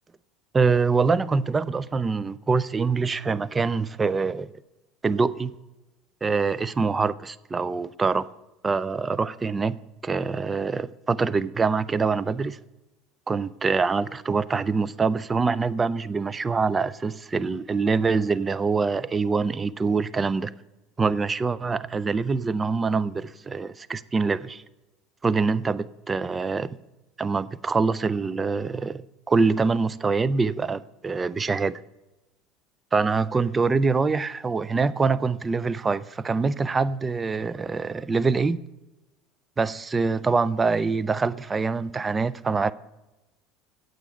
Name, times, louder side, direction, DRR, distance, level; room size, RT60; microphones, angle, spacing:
voice 1, 0.5-4.5 5.0-5.6 6.2-8.3 8.6-9.8 10.0-12.6 13.3-20.5 21.0-24.6 25.2-26.8 27.2-29.0 29.3-31.8 32.9-38.6 39.6-42.7, right 4 dB, 20° right, 0.4 m, -24 dB
8.9 x 7.8 x 4.6 m
figure-of-eight pair, 70°, 0 cm